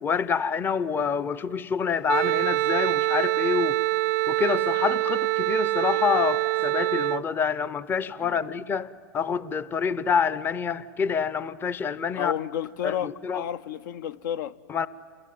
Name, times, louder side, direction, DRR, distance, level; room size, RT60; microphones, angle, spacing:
voice 1, 0.0-3.8 4.3-12.3 12.8-13.4 14.7-14.9, left 6 dB, 20° left, 0.6 m, -27 dB
Wind instrument woodwind instrument, 2.1-7.2, right 21 dB, 55° right, 0.6 m, -25 dB
voice 2, 12.1-14.6, left 10 dB, 65° left, 0.7 m, -31 dB
28.0 x 22.5 x 9.4 m
hypercardioid pair, 125°, 11 cm